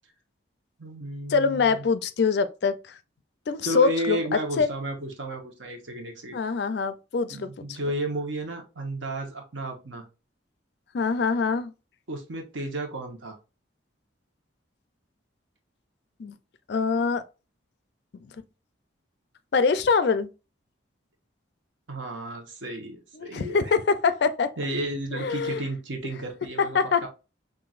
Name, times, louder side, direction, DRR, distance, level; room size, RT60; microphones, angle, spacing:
voice 1, 0.8-1.8 3.6-6.4 7.2-10.1 12.1-13.4 21.9-23.7 24.6-27.1, right 1 dB, 70° right, 1.1 m, -33 dB
voice 2, 1.3-3.0 3.5-4.7 6.3-7.8 10.9-11.7 16.2-16.4 16.7-17.2 19.5-20.3 23.1-24.5 25.1-25.6 26.7-27.1, left 5 dB, 55° left, 0.4 m, -24 dB
5.7 x 2.5 x 2.4 m
head